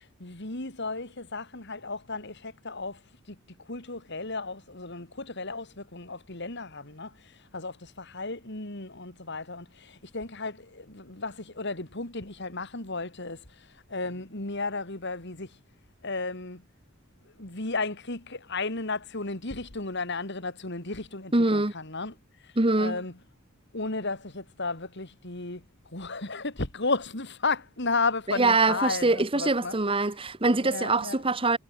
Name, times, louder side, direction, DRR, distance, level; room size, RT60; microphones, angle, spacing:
voice 1, 0.2-3.0 3.3-3.4 3.7-7.1 7.5-13.4 13.9-15.5 16.0-16.6 17.4-22.1 22.7-23.2 23.7-25.6 25.9-29.8 30.6-31.3, left 3 dB, 55° left, 3.4 m, -33 dB
voice 2, 21.3-21.7 22.6-23.0 28.3-31.6, right 3 dB, 25° right, 1.3 m, -24 dB
head